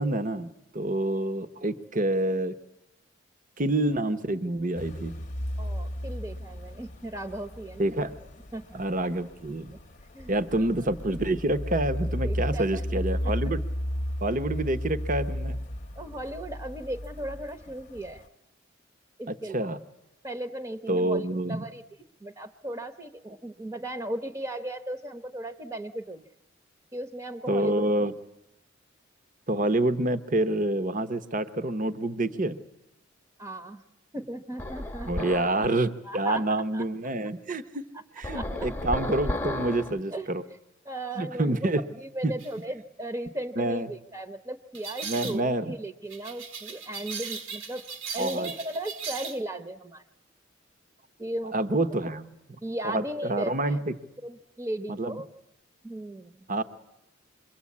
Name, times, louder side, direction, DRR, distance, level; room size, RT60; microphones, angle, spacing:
voice 1, 0.0-2.6 3.6-5.1 7.8-8.2 8.8-9.7 10.3-13.6 14.2-15.6 19.3-19.8 20.9-21.6 27.5-28.1 29.5-32.6 35.1-37.8 38.2-40.4 41.2-41.8 42.2-42.3 43.6-43.9 45.0-45.7 48.2-48.5 51.5-52.3 52.8-54.0 54.9-55.2 56.5-56.6, right 1 dB, 45° right, 10 dB, 1.0 m, -27 dB
sound 1, 4.7-18.3, equal, 40° left, 0.9 m, -34 dB
voice 2, 5.6-7.9 8.5-8.8 10.1-10.9 12.2-12.8 13.2-13.3 15.9-18.2 19.2-19.7 20.2-21.8 22.2-26.3 26.9-27.9 33.4-33.8 34.1-35.3 36.0-36.8 37.9-38.0 38.3-38.7 40.1-40.3 40.8-47.8 48.1-50.0 51.2-51.5 52.6-53.8 54.2-55.3 55.8-56.5, right 1 dB, 20° right, 8 dB, 0.9 m, -36 dB
sound 2, 34.6-35.7 38.2-40.0, left 1 dB, 10° left, 1.0 m, -33 dB
sound 3, 42.4-42.6 44.7-45.4 46.1-49.4, right 6 dB, 75° right, 1.5 m, -38 dB
27.0 x 23.0 x 8.6 m, 0.92 s
head